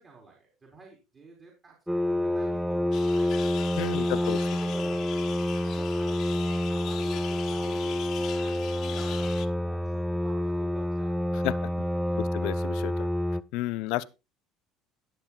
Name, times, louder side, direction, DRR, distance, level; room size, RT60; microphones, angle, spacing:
voice 1, 0.0-1.7 2.0-3.4 4.0-5.1 5.6-9.3 9.6-11.2 11.4-12.5 13.9-14.1, right 3 dB, 30° right, 3.9 m, -50 dB
sound 1, 1.9-13.4, left 1 dB, 5° right, 0.5 m, -28 dB
sound 2, 2.9-9.5, left 11 dB, 55° left, 1.3 m, -41 dB
voice 2, 3.8-4.4 11.3-11.6 12.2-13.1 13.5-14.1, left 18 dB, 70° left, 0.6 m, -31 dB
18.0 x 7.4 x 2.4 m
cardioid pair, 125°, 0 cm